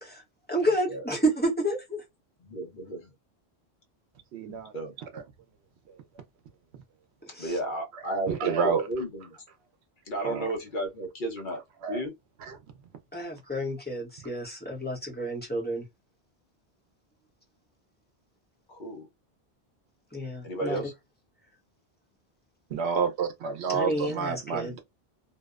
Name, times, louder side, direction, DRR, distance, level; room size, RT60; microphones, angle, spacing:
voice 1, 0.5-2.0 4.5-4.6 7.3-7.6 13.1-15.8 20.1-20.8 23.7-24.7, right 1 dB, 10° left, 0.7 m, -30 dB
voice 2, 2.4-3.1 4.7-4.9 7.4-9.3 10.1-11.6 11.9-12.1 18.7-19.1 20.4-20.9, right 1 dB, 50° left, 0.9 m, -33 dB
voice 3, 4.3-4.7 5.1-5.2 5.9-6.0 8.3-8.9 10.2-10.5 11.8-12.0 12.5-12.6 22.7-24.8, right 6 dB, 80° right, 0.9 m, -29 dB
2.7 x 2.0 x 2.3 m
omnidirectional pair, 1.1 m